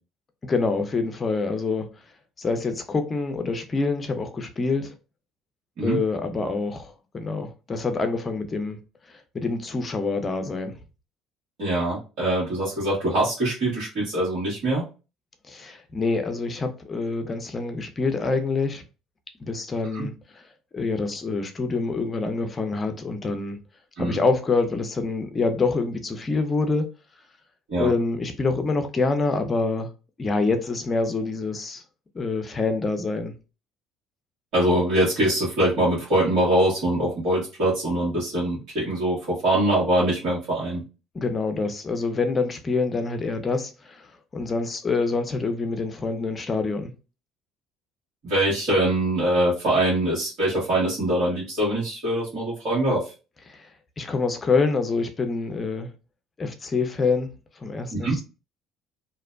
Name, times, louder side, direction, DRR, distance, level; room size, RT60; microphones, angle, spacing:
voice 1, 0.4-1.9 2.4-4.9 5.8-8.8 9.3-10.7 15.5-18.8 19.4-20.1 20.7-23.6 24.0-26.8 27.8-29.9 30.2-31.8 32.1-33.3 41.1-44.0 44.3-46.9 53.5-53.7 54.0-55.9 56.4-57.3 57.6-58.1, left 3 dB, 35° left, 0.6 m, -26 dB
voice 2, 11.6-14.8 19.9-20.1 24.0-24.2 27.7-27.9 34.5-40.8 48.2-53.0 57.9-58.2, right 1 dB, 65° right, 1.3 m, -23 dB
2.6 x 2.1 x 2.4 m
hypercardioid pair, 60°, 0 cm